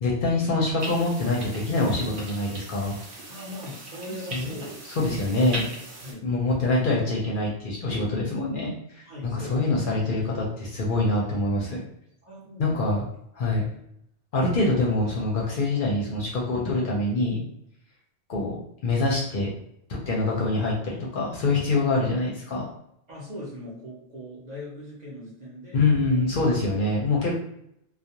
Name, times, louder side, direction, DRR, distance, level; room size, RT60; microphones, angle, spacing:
voice 1, 0.0-3.0 4.3-4.5 4.9-5.6 6.2-11.8 12.6-13.0 13.4-13.7 14.3-17.4 18.3-19.5 20.1-22.6 25.7-27.3, left 2 dB, 60° left, -3 dB, 0.6 m, -25 dB
sound 1, 0.8-6.1, right 1 dB, 70° right, 1.0 m, -38 dB
voice 2, 3.3-5.4 6.0-6.3 9.1-9.6 12.2-13.0 23.1-26.2, left 1 dB, 45° right, -5 dB, 0.7 m, -40 dB
2.3 x 2.1 x 2.7 m, 0.75 s
omnidirectional pair, 1.1 m